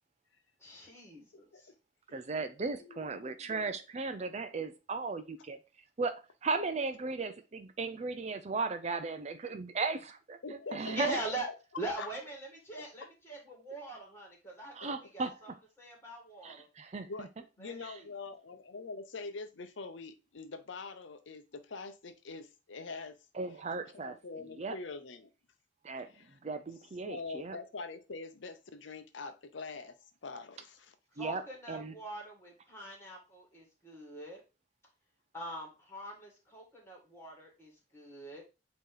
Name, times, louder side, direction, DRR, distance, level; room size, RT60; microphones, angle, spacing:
voice 1, 0.6-1.7 10.9-11.5 11.8-15.5 15.8-16.7 17.6-17.8 31.1-34.4 35.3-38.4, right 2 dB, 15° left, 2.3 m, -42 dB
voice 2, 1.3-1.8 2.8-3.5 10.4-11.5 12.0-12.1 13.0-13.1 14.8-14.9 17.0-17.3 17.6-23.2 23.7-25.3 26.0-26.4 27.0-30.0 30.2-30.9, left 4 dB, 85° left, 0.7 m, -44 dB
voice 3, 2.1-5.6 6.0-10.4 10.7-11.2 14.7-15.3 16.4-17.0 23.4-24.1 24.6-24.8 25.8-26.1 26.4-27.6 31.2-31.4 31.7-31.9, right 4 dB, 35° right, 0.5 m, -36 dB
8.3 x 3.0 x 3.8 m
head